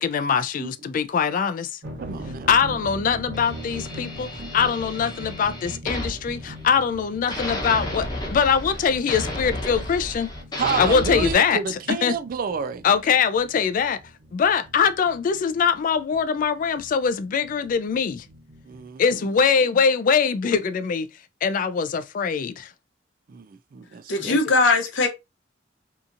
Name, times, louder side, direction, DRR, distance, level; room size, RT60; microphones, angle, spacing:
voice 1, 0.0-1.8 2.5-10.3 10.8-12.2 12.8-14.0 14.3-18.3 19.0-21.1 21.4-22.7 24.2-24.4, left 6 dB, 45° left, 0.3 m, -22 dB
voice 2, 0.6-1.0 2.0-2.5 10.6-12.8 18.6-19.0 23.3-24.4, right 5 dB, 50° right, 0.3 m, -30 dB
sound 1, 1.8-18.8, equal, 85° right, 0.9 m, -41 dB
sound 2, 3.3-7.0 7.3-11.3, left 1 dB, 20° left, 0.8 m, -32 dB
voice 3, 24.1-25.1, left 3 dB, 75° left, 0.7 m, -20 dB
2.8 x 2.5 x 2.4 m
head